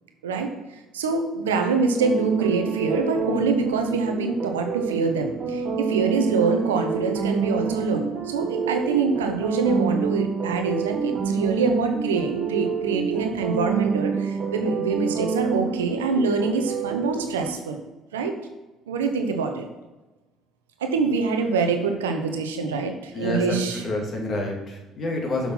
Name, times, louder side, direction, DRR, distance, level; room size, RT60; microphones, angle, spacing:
voice 1, 0.2-0.5 0.9-17.8 18.1-18.4 18.9-19.7 20.8-23.8, right 4 dB, 85° right, 5 dB, 0.9 m, -25 dB
sound 1, 2.0-17.5, right 6 dB, 55° right, 1.2 m, -27 dB
voice 2, 23.1-23.6 23.8-25.5, left 2 dB, 50° left, 0 dB, 2.5 m, -28 dB
6.2 x 5.8 x 5.6 m, 1.1 s
hypercardioid pair, 55°, 0 cm